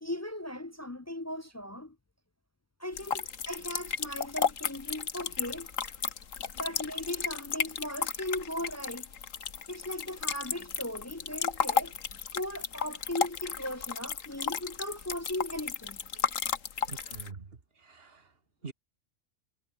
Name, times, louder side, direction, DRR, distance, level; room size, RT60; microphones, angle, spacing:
voice 1, 0.0-2.0 2.8-5.7 6.5-9.1 9.7-16.0, left 1 dB, 25° left, 0.3 m, -38 dB
sound 1, 2.9-17.3, left 7 dB, 85° left, 1.8 m, -34 dB
voice 2, 16.9-18.7, right 4 dB, 50° right, 2.0 m, -46 dB
omnidirectional pair, 1.3 m